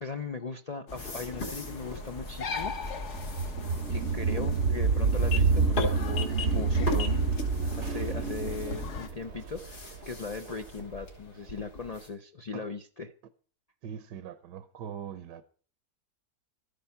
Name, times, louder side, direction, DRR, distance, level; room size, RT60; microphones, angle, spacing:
voice 1, 0.0-2.7 3.9-13.1, left 4 dB, 85° left, 0.3 m, -39 dB
sound 1, 0.9-9.1, left 4 dB, 50° left, 1.2 m, -38 dB
sound 2, 1.0-12.1, left 2 dB, 70° left, 3.9 m, -41 dB
sound 3, 1.5-10.5, right 4 dB, 55° right, 0.8 m, -28 dB
voice 2, 13.8-15.4, right 8 dB, 80° right, 1.4 m, -41 dB
13.5 x 10.5 x 5.6 m
omnidirectional pair, 1.8 m